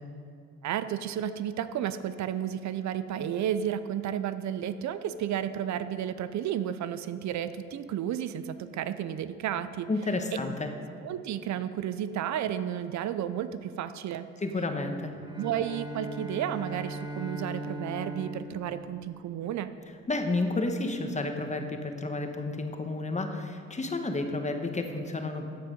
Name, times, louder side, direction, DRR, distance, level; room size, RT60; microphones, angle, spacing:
voice 1, 0.6-9.9 11.0-14.3 15.4-19.7, right 10 dB, 65° right, 12 dB, 0.6 m, -32 dB
voice 2, 9.9-10.7 14.4-15.1 20.1-25.5, left 2 dB, 25° left, 5 dB, 1.2 m, -31 dB
Bowed string instrument, 15.1-19.8, right 1 dB, 15° right, 1.2 m, -40 dB
13.5 x 7.6 x 5.2 m, 2.3 s
cardioid pair, 90°, 30 cm